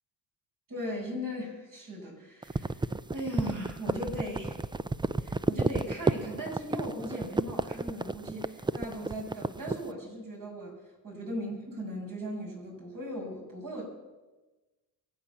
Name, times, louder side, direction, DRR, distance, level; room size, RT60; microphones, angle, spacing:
voice 1, 0.7-4.6 5.2-10.7 11.0-13.8, equal, 55° right, -1 dB, 7.1 m, -38 dB
sound 1, 2.4-9.9, right 3 dB, 10° right, 0.5 m, -31 dB
23.5 x 7.8 x 7.2 m, 1.2 s
cardioid pair, 75°, 40 cm